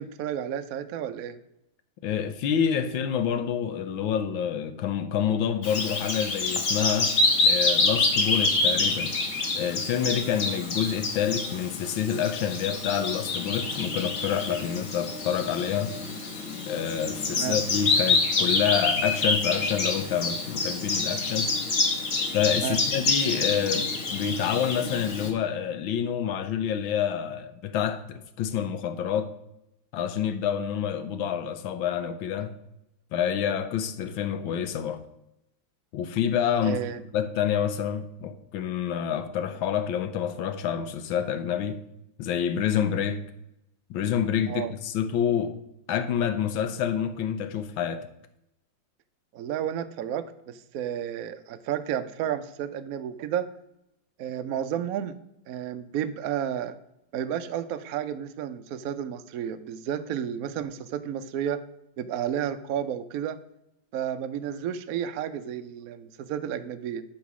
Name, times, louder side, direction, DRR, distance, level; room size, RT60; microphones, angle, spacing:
voice 1, 0.0-1.4 17.3-17.6 22.6-22.8 36.6-37.0 44.5-44.7 49.3-53.5 54.2-55.2 55.5-56.8 57.1-61.6 62.0-63.4 63.9-67.0, right 9 dB, 70° right, 0.8 m, -32 dB
voice 2, 2.0-7.2 7.4-9.1 9.5-15.9 16.7-21.5 22.3-29.3 29.9-32.5 33.1-35.0 35.9-36.8 37.1-41.8 42.2-43.2 43.9-45.6 45.9-48.1, left 8 dB, 85° left, 1.5 m, -28 dB
Bird vocalization bird call bird song, 5.6-25.3, left 3 dB, 45° left, 1.6 m, -27 dB
11.5 x 3.9 x 6.1 m
omnidirectional pair, 2.1 m